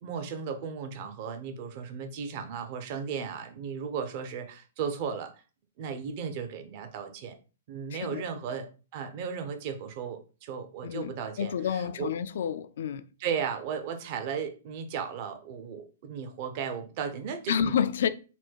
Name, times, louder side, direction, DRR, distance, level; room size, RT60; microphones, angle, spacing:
voice 1, 0.0-5.3 5.8-7.3 7.7-8.7 8.9-12.1 13.2-17.8, right 6 dB, 45° right, 0.8 m, -35 dB
voice 2, 7.9-8.2 10.8-13.1 17.5-18.1, left 8 dB, 70° left, 0.4 m, -29 dB
4.3 x 2.2 x 4.5 m
hypercardioid pair, 140°, 0 cm